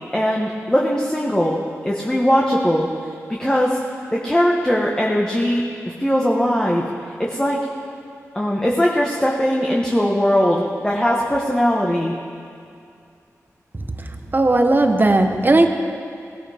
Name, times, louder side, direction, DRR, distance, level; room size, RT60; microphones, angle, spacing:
voice 1, 0.1-2.9 3.4-3.8 4.1-5.6 6.0-6.8 7.2-7.6 8.3-12.1, equal, 10° left, -3 dB, 1.4 m, -19 dB
voice 2, 14.0-15.7, right 2 dB, 35° right, 5 dB, 1.1 m, -17 dB
17.5 x 12.0 x 3.6 m, 2.4 s
cardioid pair, 50°, 6 cm